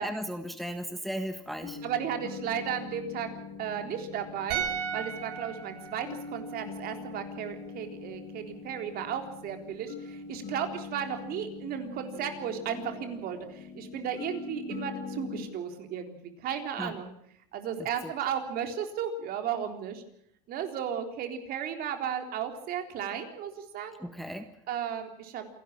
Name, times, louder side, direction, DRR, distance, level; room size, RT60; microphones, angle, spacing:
voice 1, 0.0-1.8 16.8-16.9 17.8-18.1 24.0-24.5, equal, ahead, 7 dB, 1.5 m, -36 dB
sound 1, 1.6-15.5, left 5 dB, 50° left, 6.2 m, -43 dB
voice 2, 1.8-3.3 3.6-17.1 17.5-20.0 20.5-23.9 24.7-25.5, right 8 dB, 50° right, 6 dB, 3.7 m, -34 dB
sound 2, 4.5-7.7 8.0-8.1, right 8 dB, 80° right, 6.1 m, -37 dB
27.5 x 12.0 x 8.8 m, 0.70 s
supercardioid pair, 125°, 20 cm